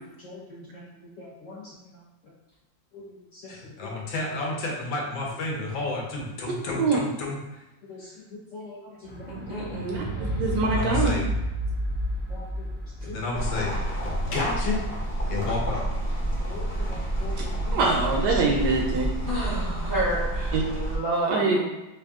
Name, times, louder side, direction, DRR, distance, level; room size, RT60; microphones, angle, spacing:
voice 1, 1.2-1.6 2.9-3.0 7.9-8.0 8.5-9.5 10.2-10.3 12.3-12.4 13.1-13.2 16.5-17.8, left 3 dB, 60° left, -6 dB, 0.8 m, -42 dB
voice 2, 3.5-7.6 10.7-11.3 13.0-13.8 14.2-14.8 15.3-15.9, left 3 dB, 80° left, -1 dB, 1.5 m, -31 dB
sound 1, 9.0-15.5 16.3-16.4, equal, 15° right, 0.4 m, -31 dB
voice 3, 9.3-10.0 19.2-21.6, right 1 dB, 45° right, -9 dB, 0.7 m, -30 dB
voice 4, 9.8-11.2 17.7-19.1 20.5-20.6 21.3-21.6, right 3 dB, 70° right, 0 dB, 1.1 m, -24 dB
sound 2, 13.3-21.0, right 1 dB, 30° left, 0.7 m, -29 dB
3.5 x 2.7 x 3.5 m, 0.97 s
omnidirectional pair, 2.0 m